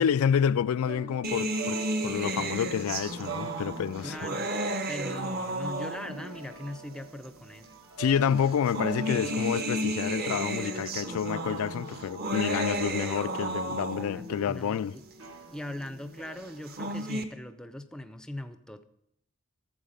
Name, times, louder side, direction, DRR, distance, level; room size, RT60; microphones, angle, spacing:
voice 1, 0.0-4.2 8.0-15.0, left 8 dB, 75° left, 0.3 m, -28 dB
sound 1, 0.7-17.2, right 4 dB, 80° right, 1.6 m, -44 dB
sound 2, 1.2-6.3 7.2-7.3 8.4-14.3 16.5-17.2, right 1 dB, 45° right, 0.8 m, -33 dB
voice 2, 4.0-4.6 4.9-7.7 14.0-15.0 15.5-18.8, left 1 dB, 5° left, 0.5 m, -40 dB
12.5 x 7.4 x 5.1 m
head